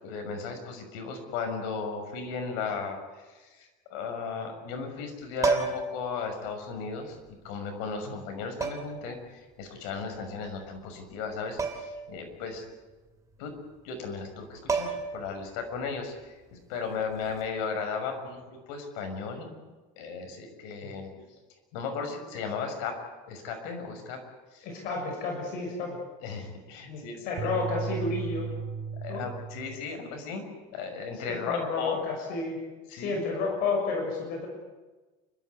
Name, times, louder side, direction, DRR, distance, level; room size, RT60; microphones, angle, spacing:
voice 1, 0.0-3.0 3.3-12.6 13.4-13.5 13.8-19.5 20.0-21.1 21.7-22.9 23.3-24.2 24.5-24.6 26.2-27.9 29.0-30.4 30.7-32.0 32.3-32.4 32.9-33.2, left 5 dB, 80° left, 4 dB, 6.5 m, -36 dB
sound 1, 5.4-6.0 7.3-7.4 8.6-9.0 11.6-12.0 12.3-12.4 14.3-14.4 14.7-15.3 17.2-17.4, right 4 dB, 20° right, 3.1 m, -29 dB
voice 2, 24.6-26.0 26.9-28.5 29.1-29.3 31.1-32.6 32.9-34.5, left 4 dB, 60° left, 2 dB, 6.4 m, -31 dB
sound 2, 27.4-29.9, right 6 dB, 55° right, 2.6 m, -35 dB
29.0 x 13.5 x 9.6 m, 1.2 s
cardioid pair, 140°, 17 cm